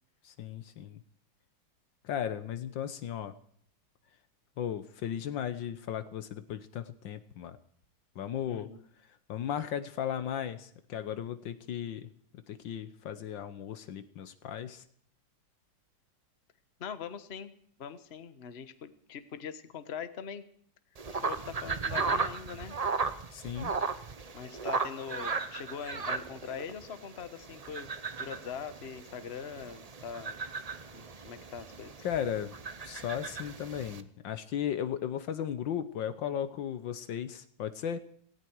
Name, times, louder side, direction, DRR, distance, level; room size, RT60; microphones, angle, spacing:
voice 1, 0.2-1.0 2.0-3.3 4.6-7.6 8.1-8.7 9.3-12.1 12.5-14.8 23.3-23.7 32.0-32.6 32.8-38.0, left 9 dB, 70° left, 11 dB, 1.6 m, -36 dB
voice 2, 8.5-8.8 16.8-20.4 21.1-22.8 24.3-27.9 28.2-30.4 30.9-31.9, left 7 dB, 35° left, 11 dB, 1.3 m, -42 dB
sound 1, 20.9-34.0, right 4 dB, 85° right, 0.3 m, -36 dB
18.0 x 17.0 x 4.7 m, 0.63 s
omnidirectional pair, 2.2 m